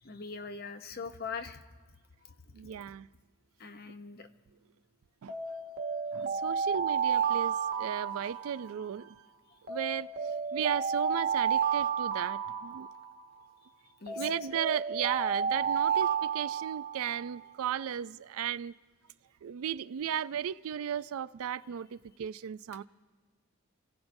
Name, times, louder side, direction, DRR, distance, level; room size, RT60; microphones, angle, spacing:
voice 1, 0.0-1.6 2.2-2.3 3.6-4.3 14.0-14.3, left 5 dB, 45° left, 0.8 m, -41 dB
voice 2, 2.5-3.1 5.2-5.4 6.1-9.2 9.7-12.9 14.1-18.7 19.4-22.8, right 9 dB, 70° right, 0.3 m, -35 dB
Alarm, 5.3-9.0 9.7-13.4 14.1-17.3, right 7 dB, 50° right, 1.1 m, -31 dB
29.5 x 16.0 x 2.6 m
head